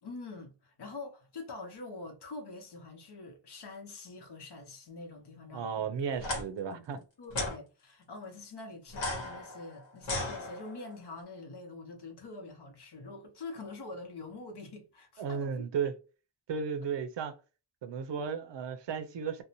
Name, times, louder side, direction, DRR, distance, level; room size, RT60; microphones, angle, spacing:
voice 1, 0.0-5.9 6.7-6.8 7.2-15.7, left 3 dB, 60° left, 0.8 m, -45 dB
voice 2, 5.5-7.0 15.2-15.9 16.5-17.3 17.8-19.4, right 6 dB, 70° right, 0.6 m, -34 dB
sound 1, 6.2-6.4 7.3-7.6 8.9-10.9, left 2 dB, 85° left, 0.9 m, -35 dB
2.6 x 2.0 x 2.8 m
wide cardioid pair, 90°, 44 cm